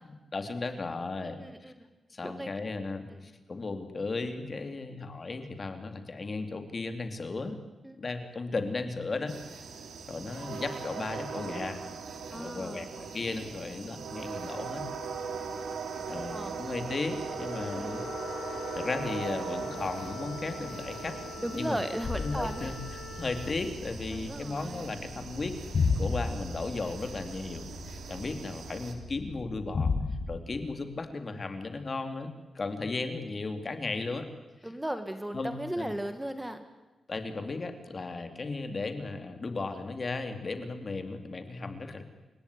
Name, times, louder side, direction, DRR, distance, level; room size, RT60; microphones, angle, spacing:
voice 1, 0.3-1.4 2.1-7.6 8.0-9.4 10.1-11.8 12.3-14.8 16.1-18.0 18.8-21.2 21.5-21.8 22.1-25.6 26.0-29.9 30.3-34.3 34.6-34.7 35.3-35.9 37.1-42.0, left 3 dB, 35° left, 8 dB, 2.7 m, -35 dB
voice 2, 1.4-1.7 2.2-2.5 3.1-3.2 7.8-8.0 12.3-12.9 16.3-16.6 17.6-18.0 21.4-22.7 24.1-24.9 34.6-36.6, right 1 dB, 10° right, 9 dB, 1.7 m, -36 dB
sound 1, 9.3-28.9, right 5 dB, 90° right, 3.2 m, -40 dB
Wind instrument woodwind instrument, 17.2-23.6, left 7 dB, 75° left, 3.9 m, -44 dB
sound 2, 22.0-30.2, left 4 dB, 50° left, 6.8 m, -34 dB
29.0 x 16.5 x 9.8 m, 1.1 s
wide cardioid pair, 120°, 0 cm